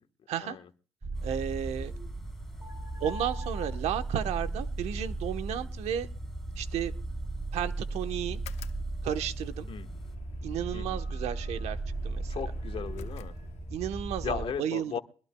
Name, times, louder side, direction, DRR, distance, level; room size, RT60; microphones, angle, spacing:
sound 1, 1.0-14.5, right 2 dB, 20° right, 2.7 m, -36 dB
sound 2, 1.1-10.2, left 1 dB, ahead, 3.8 m, -57 dB
voice 1, 1.2-1.9 3.0-6.1 6.6-6.9 7.5-8.4 9.0-9.7 10.4-11.8 12.0-12.4 13.7-14.9, right 10 dB, 85° right, 9 dB, 1.1 m, -33 dB
sound 3, 8.3-14.0, left 12 dB, 85° left, 0.8 m, -52 dB
voice 2, 12.3-13.3 14.2-15.0, left 8 dB, 60° left, 9 dB, 1.3 m, -36 dB
23.0 x 21.5 x 2.3 m, 0.41 s
cardioid pair, 80°, 11 cm